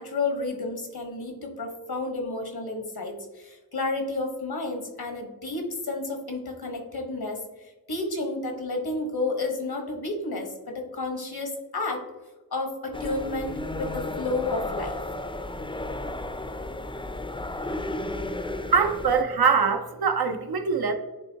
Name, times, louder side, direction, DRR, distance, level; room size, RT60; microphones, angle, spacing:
voice 1, 0.0-12.0 12.5-15.0, left 2 dB, 85° left, 3 dB, 1.4 m, -31 dB
sound 1, 12.9-19.2, left 1 dB, 15° left, 0.4 m, -33 dB
voice 2, 18.7-20.9, right 5 dB, 85° right, 6 dB, 0.7 m, -23 dB
9.7 x 3.6 x 2.8 m, 1.1 s
wide cardioid pair, 60°, 37 cm